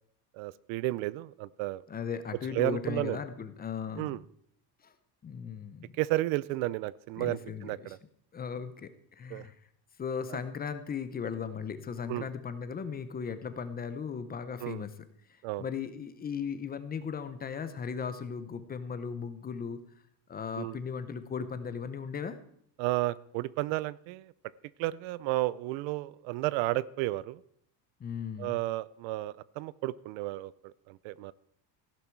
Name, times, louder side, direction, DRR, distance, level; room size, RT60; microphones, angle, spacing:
voice 1, 0.3-1.8 2.5-3.2 4.0-4.2 6.0-8.0 9.3-9.5 10.3-10.4 12.1-12.3 14.6-14.8 15.4-15.7 20.6-20.8 22.8-24.3 24.8-27.4 28.4-31.3, right 18 dB, 80° right, 20 dB, 0.7 m, -32 dB
voice 2, 1.9-4.2 4.8-4.9 5.2-5.9 7.2-7.9 8.3-9.6 10.0-14.9 15.3-19.8 20.3-22.4 28.0-28.6, left 6 dB, 20° left, 11 dB, 0.7 m, -37 dB
15.0 x 11.5 x 4.6 m, 0.68 s
cardioid pair, 170°, 46 cm